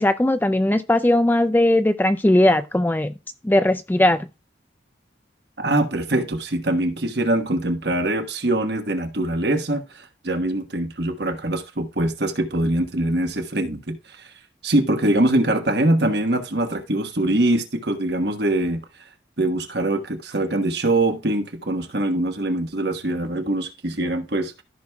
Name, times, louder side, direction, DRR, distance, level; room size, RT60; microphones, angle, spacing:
voice 1, 0.0-3.1 3.4-4.3, left 1 dB, 10° left, 0.3 m, -18 dB
voice 2, 5.6-14.3 14.6-18.8 19.4-24.6, right 1 dB, 55° right, 1.3 m, -23 dB
14.0 x 6.1 x 2.3 m
head